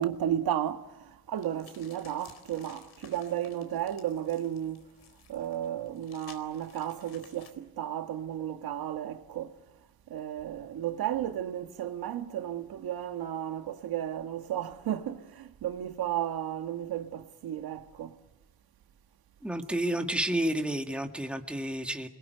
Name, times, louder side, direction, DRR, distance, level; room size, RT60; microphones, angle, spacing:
voice 1, 0.0-4.8 5.3-9.6 10.1-18.2, right 11 dB, 70° right, 1.9 m, -33 dB
sound 1, 1.4-7.5, left 7 dB, 80° left, 4.2 m, -56 dB
voice 2, 19.4-22.1, right 1 dB, 5° right, 2.0 m, -30 dB
29.0 x 21.0 x 9.4 m
cardioid pair, 105°, 37 cm